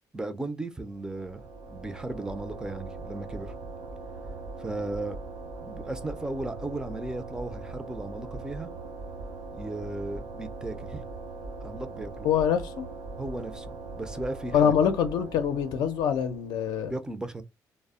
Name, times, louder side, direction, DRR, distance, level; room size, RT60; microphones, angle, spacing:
voice 1, 0.1-1.4 1.7-3.5 4.6-5.2 5.6-8.7 9.5-11.1 11.6-12.3 13.2-14.8 16.9-17.4, right 2 dB, 10° right, 0.4 m, -36 dB
sound 1, 0.8-16.7, right 3 dB, 70° right, 0.7 m, -40 dB
voice 2, 12.2-12.9 14.5-16.9, left 8 dB, 80° left, 0.5 m, -25 dB
2.0 x 2.0 x 3.5 m
cardioid pair, 135°, 7 cm